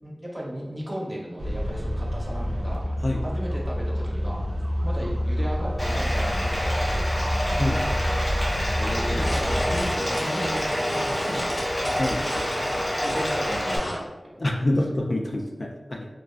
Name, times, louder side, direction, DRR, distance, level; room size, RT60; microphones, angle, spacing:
voice 1, 0.0-2.8 3.2-4.4 4.8-7.9 8.3-8.5 9.1-11.6 13.0-14.6, equal, 20° right, -3 dB, 0.6 m, -35 dB
sound 1, 1.4-9.9, equal, 75° right, 0.4 m, -27 dB
Bathtub (filling or washing), 5.8-13.8, equal, 20° left, 0.7 m, -28 dB
sound 2, 8.8-14.0, equal, 75° left, 0.7 m, -33 dB
voice 2, 8.8-9.3 12.0-12.2 14.4-16.1, left 1 dB, 55° left, 1 dB, 0.3 m, -27 dB
2.4 x 2.2 x 2.3 m, 1.1 s
wide cardioid pair, 50°, 0 cm